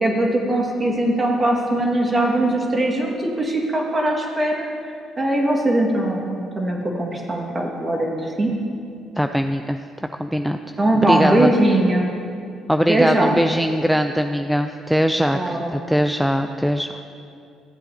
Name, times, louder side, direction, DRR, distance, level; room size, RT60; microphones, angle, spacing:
voice 1, 0.0-4.7 5.2-8.5 10.8-12.1 12.9-13.4 15.3-15.7, right 1 dB, 30° right, 0 dB, 1.8 m, -20 dB
voice 2, 9.2-9.8 10.2-10.6 11.0-11.5 12.7-16.9, equal, ahead, 7 dB, 0.3 m, -21 dB
14.5 x 7.6 x 2.8 m, 2.5 s
supercardioid pair, 65°, 0 cm